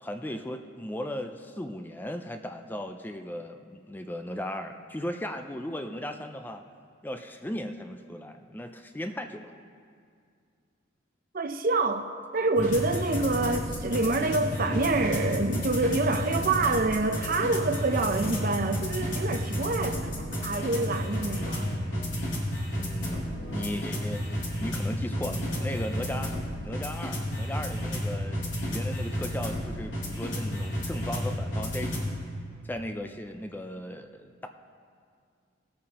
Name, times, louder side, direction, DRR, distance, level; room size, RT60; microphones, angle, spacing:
voice 1, 0.0-6.6 7.0-9.5 22.8-24.4 24.6-26.3 26.6-32.2 32.6-34.5, left 1 dB, 10° left, 0.4 m, -37 dB
voice 2, 11.3-12.1 12.3-21.7, right 2 dB, 50° right, 0.6 m, -27 dB
sound 1, 12.6-32.1, equal, 75° left, 3.0 m, -32 dB
20.5 x 8.5 x 2.9 m
head